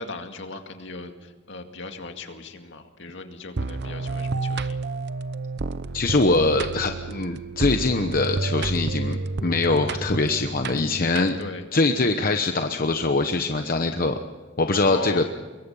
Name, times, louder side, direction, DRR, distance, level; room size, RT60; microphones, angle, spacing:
voice 1, 0.0-4.8 10.9-11.6 14.8-15.3, left 2 dB, 65° left, 5 dB, 2.2 m, -37 dB
sound 1, 3.6-11.7, right 3 dB, 55° right, 0.8 m, -30 dB
voice 2, 5.9-11.4 11.7-14.1 14.6-15.2, left 3 dB, 45° left, 6 dB, 1.0 m, -23 dB
25.5 x 23.0 x 5.6 m, 1.3 s
head